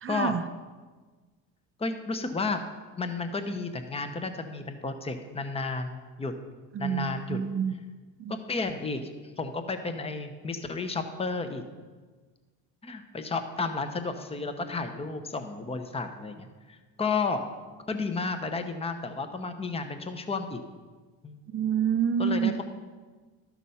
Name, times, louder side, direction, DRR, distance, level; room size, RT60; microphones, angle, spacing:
voice 1, 0.0-0.4 6.8-7.7 8.2-8.4 21.5-22.6, right 7 dB, 35° right, 10 dB, 0.5 m, -27 dB
voice 2, 1.8-2.6 3.0-6.3 6.8-7.4 8.3-11.6 12.8-17.5 17.9-20.6 21.2-21.4 22.2-22.6, left 4 dB, 15° left, 8 dB, 0.9 m, -32 dB
12.5 x 6.1 x 5.6 m, 1.4 s
supercardioid pair, 95°, 39 cm